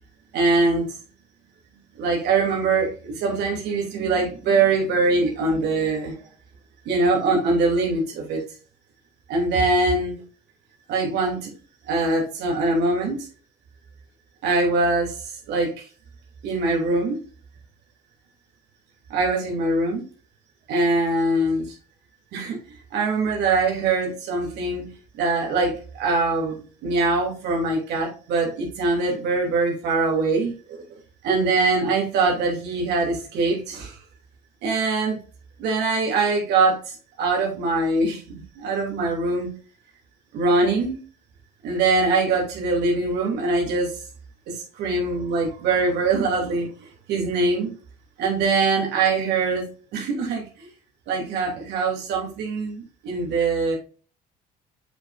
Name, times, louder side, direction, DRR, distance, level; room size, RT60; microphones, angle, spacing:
voice 1, 0.3-0.9 2.0-6.2 6.8-8.4 9.3-10.2 10.9-11.5 11.9-13.2 14.4-15.1 15.5-15.7 16.4-17.2 19.1-20.0 20.7-21.6 22.3-22.6 22.9-24.9 25.2-26.6 26.8-30.6 31.2-33.9 34.6-35.2 35.6-36.8 37.2-39.5 40.3-41.0 41.6-43.9 44.5-46.7 47.1-47.7 48.2-50.4 51.1-53.8, right 3 dB, 80° right, -1 dB, 2.9 m, -22 dB
7.7 x 5.6 x 2.6 m, 0.37 s
cardioid pair, 110°, 17 cm